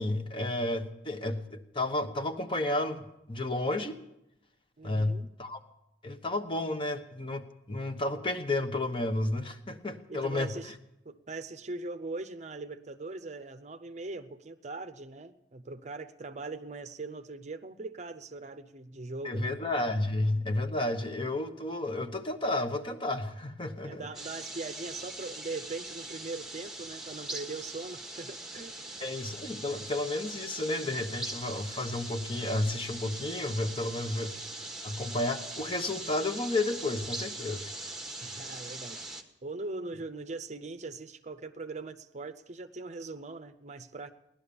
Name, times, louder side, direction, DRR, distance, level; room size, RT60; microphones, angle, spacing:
voice 1, 0.0-4.0 4.8-5.6 6.0-10.5 19.2-24.1 29.0-34.3 34.8-37.7, left 2 dB, 30° left, 7 dB, 1.1 m, -32 dB
voice 2, 4.8-5.3 10.1-10.7 11.0-19.6 23.8-29.1 38.2-39.0 39.4-44.1, right 3 dB, 40° right, 10 dB, 0.7 m, -41 dB
sound 1, 24.1-39.2, right 2 dB, 5° right, 1.2 m, -41 dB
17.5 x 11.5 x 7.0 m, 0.85 s
head